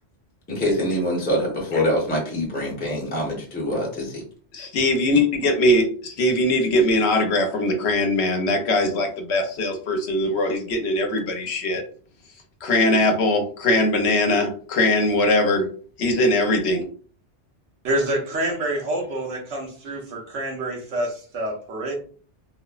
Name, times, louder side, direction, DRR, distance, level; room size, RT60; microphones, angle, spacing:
voice 1, 0.6-4.2, equal, 10° left, -2 dB, 0.6 m, -24 dB
voice 2, 4.5-11.8 12.6-15.7 16.0-16.8, left 1 dB, 70° left, 4 dB, 0.9 m, -21 dB
voice 3, 17.8-21.9, right 1 dB, 85° right, 1 dB, 1.0 m, -27 dB
3.1 x 2.0 x 2.3 m, 0.43 s
omnidirectional pair, 1.2 m